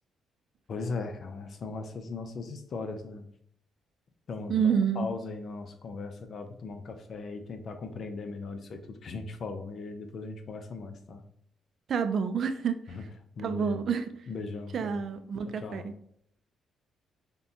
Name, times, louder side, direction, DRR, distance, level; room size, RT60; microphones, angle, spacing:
voice 1, 0.7-3.3 4.3-11.2 12.9-13.0 13.4-13.9 14.3-15.0 15.5-15.9, left 4 dB, 55° left, 7 dB, 0.6 m, -38 dB
voice 2, 4.5-5.1 11.9-12.8 13.4-14.1 14.7-15.9, right 6 dB, 55° right, 9 dB, 0.4 m, -28 dB
6.6 x 2.3 x 2.7 m, 0.69 s
cardioid pair, 90°, 0 cm